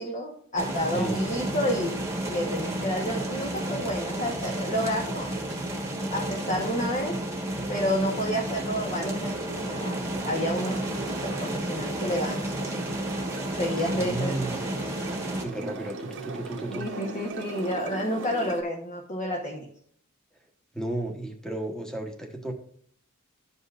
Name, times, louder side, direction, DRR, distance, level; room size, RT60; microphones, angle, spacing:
voice 1, 0.0-1.9 2.2-5.3 6.1-7.2 7.7-9.9 10.2-12.8 13.5-14.6 15.6-15.7 16.7-19.7, equal, 35° left, 0 dB, 1.0 m, -30 dB
sound 1, 0.6-15.4, right 1 dB, 15° right, 1.2 m, -32 dB
sound 2, 8.9-18.6, right 3 dB, 60° right, 0.9 m, -39 dB
voice 2, 13.9-14.6 15.4-16.9 20.7-22.5, right 2 dB, 5° left, 3 dB, 1.1 m, -33 dB
13.0 x 5.4 x 2.4 m, 0.62 s
head